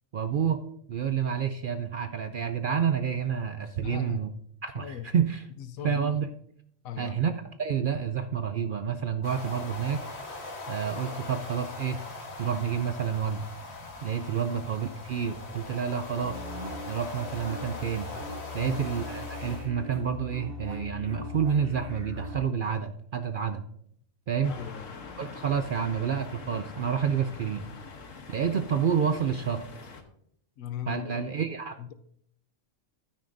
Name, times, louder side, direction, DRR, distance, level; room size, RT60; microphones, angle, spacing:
voice 1, 0.1-0.6 0.9-4.3 4.6-5.4 5.8-6.3 7.0-7.3 7.6-10.0 10.7-12.0 12.4-13.4 14.0-16.4 16.9-18.1 18.5-23.7 24.3-24.5 25.2-27.6 28.3-29.6 30.9-31.8, right 7 dB, 60° right, 0.5 m, -29 dB
voice 2, 3.8-4.2 4.8-5.1 5.6-6.0 6.8-7.2 18.6-18.8 24.5-24.9 30.6-31.3 31.8-31.9, left 9 dB, 85° left, 1.1 m, -38 dB
sound 1, 9.2-19.7, left 2 dB, 55° left, 1.6 m, -41 dB
sound 2, 16.2-22.4, left 2 dB, 45° right, 1.2 m, -40 dB
sound 3, 24.4-30.0, left 4 dB, 70° left, 1.4 m, -44 dB
12.5 x 9.5 x 2.6 m
omnidirectional pair, 1.4 m